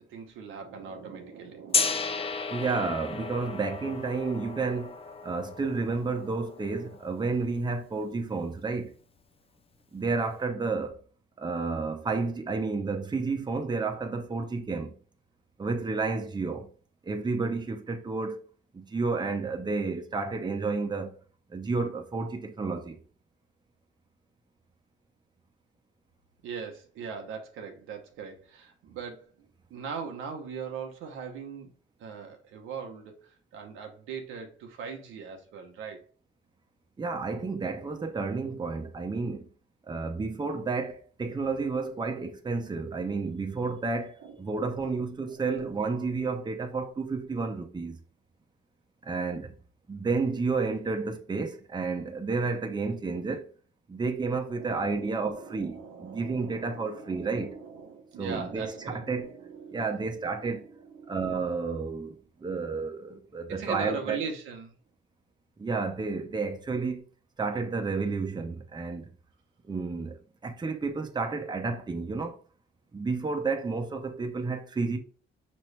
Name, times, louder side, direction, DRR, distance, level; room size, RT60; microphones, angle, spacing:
voice 1, 0.1-2.5 26.4-29.3 29.7-31.7 32.0-36.1 44.2-44.4 45.5-45.7 54.5-61.2 63.5-64.7, right 6 dB, 90° right, 1.0 m, -40 dB
Gong, 1.7-7.6, left 5 dB, 30° left, 0.5 m, -34 dB
voice 2, 2.5-5.0 5.2-8.9 9.9-11.0 11.4-14.9 15.6-16.7 17.0-18.4 18.7-21.2 21.5-23.0 37.0-39.5 39.9-48.0 49.0-49.6 49.9-53.5 53.9-57.6 58.2-59.3 59.7-60.7 61.1-62.2 62.4-64.2 65.6-67.0 67.4-69.1 69.6-72.4 72.9-75.0, right 4 dB, 20° right, 0.7 m, -31 dB
5.2 x 3.0 x 3.3 m
cardioid pair, 90°, 20 cm